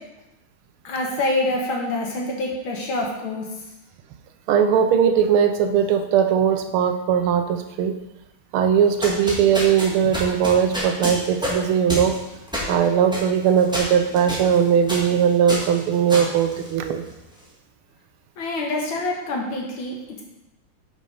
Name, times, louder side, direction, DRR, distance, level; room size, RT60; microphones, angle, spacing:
voice 1, 0.8-3.5 18.4-20.2, left 2 dB, 75° left, 0 dB, 2.1 m, -26 dB
voice 2, 4.5-8.0 8.5-12.2 12.7-17.0, right 8 dB, 85° right, 7 dB, 1.6 m, -19 dB
sound 1, 8.8-17.2, equal, ahead, 1.5 m, -30 dB
6.1 x 5.5 x 5.4 m, 0.96 s
omnidirectional pair, 2.3 m